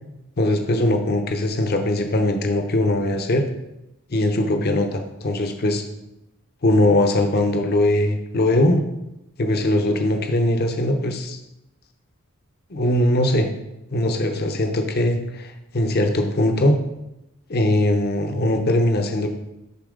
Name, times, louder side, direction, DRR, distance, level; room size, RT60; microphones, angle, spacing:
voice 1, 0.4-3.4 4.1-5.8 6.6-8.8 9.4-11.4 12.7-13.5 13.9-16.8 17.5-19.3, left 1 dB, 45° left, 5 dB, 0.8 m, -20 dB
11.0 x 4.1 x 3.7 m, 0.90 s
head